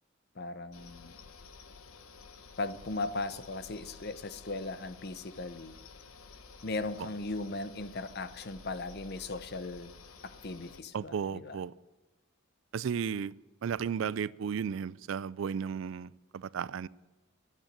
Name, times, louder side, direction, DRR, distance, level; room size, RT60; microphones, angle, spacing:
voice 1, 0.4-1.2 2.6-5.8 6.6-9.9 10.2-11.6, left 3 dB, 50° left, 0.8 m, -38 dB
sound 1, 0.7-10.8, left 4 dB, 80° left, 1.1 m, -52 dB
voice 2, 10.9-11.7 12.7-13.4 13.6-16.9, right 7 dB, 65° right, 0.3 m, -34 dB
11.5 x 9.1 x 8.7 m
head